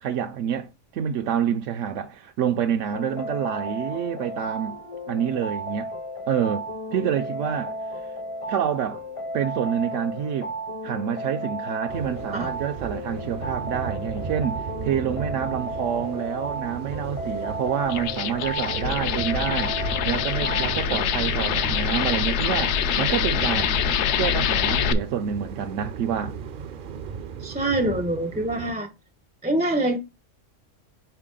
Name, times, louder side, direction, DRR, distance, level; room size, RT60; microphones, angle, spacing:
voice 1, 0.0-4.8 5.1-5.9 6.3-6.6 6.9-7.7 8.5-9.0 9.3-10.5 10.8-19.7 20.0-23.8 24.2-26.3, right 8 dB, 80° right, 0.9 m, -27 dB
sound 1, 2.9-21.0, equal, 35° left, 0.6 m, -34 dB
sound 2, 11.9-28.7, right 6 dB, 55° right, 0.6 m, -36 dB
sound 3, 17.8-24.9, left 9 dB, 70° left, 0.8 m, -25 dB
voice 2, 27.4-28.9 29.4-30.0, right 1 dB, 10° right, 0.4 m, -25 dB
5.7 x 4.5 x 3.7 m
omnidirectional pair, 1.3 m